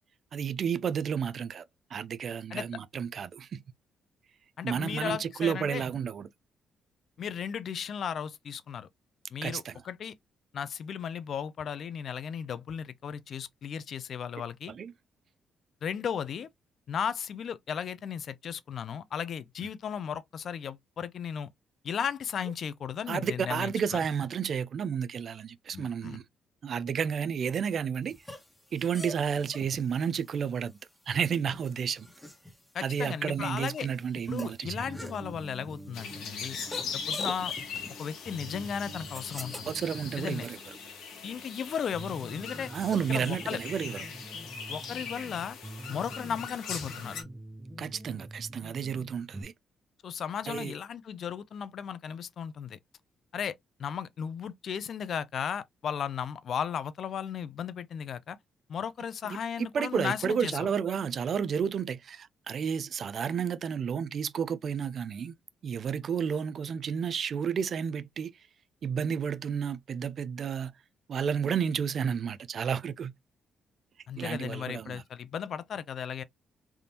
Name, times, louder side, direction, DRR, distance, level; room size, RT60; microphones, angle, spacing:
voice 1, 0.3-1.6 1.9-3.6 4.6-6.3 9.4-9.7 14.7-14.9 23.1-26.2 26.6-28.1 28.7-30.8 31.1-32.1 32.8-34.9 39.7-40.6 42.7-44.1 47.8-49.5 50.5-50.8 59.2-65.3 65.6-68.3 68.8-70.7 71.1-73.1 74.2-75.0, right 7 dB, 55° right, 0.4 m, -31 dB
voice 2, 4.6-5.8 7.2-8.9 9.3-10.1 10.5-14.7 15.8-16.5 16.9-21.5 21.8-24.0 25.7-26.2 32.7-33.9 34.3-36.6 36.9-37.5 38.0-39.7 40.2-40.5 41.2-42.7 43.1-43.6 44.7-45.6 45.9-47.2 50.0-52.8 53.3-58.4 58.7-60.6 74.1-76.2, left 7 dB, 60° left, 0.4 m, -35 dB
sound 1, 28.1-44.9, left 1 dB, 15° left, 1.1 m, -48 dB
sound 2, 34.6-49.4, right 1 dB, 15° right, 0.7 m, -46 dB
sound 3, 35.9-47.2, left 6 dB, 90° left, 1.2 m, -40 dB
3.5 x 2.5 x 2.8 m
cardioid pair, 90°, 0 cm